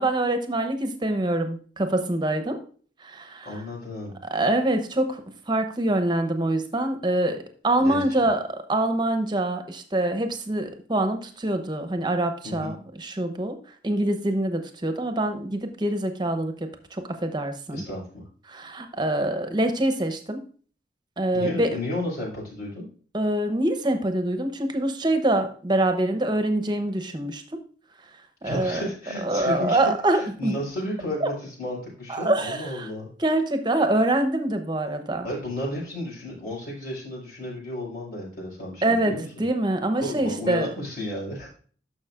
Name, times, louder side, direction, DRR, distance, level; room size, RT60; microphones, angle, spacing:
voice 1, 0.0-2.6 3.0-3.5 4.3-5.2 5.5-8.4 8.7-13.6 13.8-17.8 18.5-20.4 21.2-21.7 23.1-27.6 28.4-28.8 29.2-30.5 31.2-31.3 32.1-32.9 33.2-35.3 38.8-40.7, right 1 dB, 25° right, 7 dB, 0.9 m, -25 dB
voice 2, 3.4-4.2 7.7-8.2 12.4-12.7 17.7-18.2 21.3-22.8 28.4-29.8 30.1-33.1 35.2-39.4 40.0-41.5, left 1 dB, 55° left, -4 dB, 4.1 m, -33 dB
11.5 x 6.2 x 2.5 m, 0.43 s
head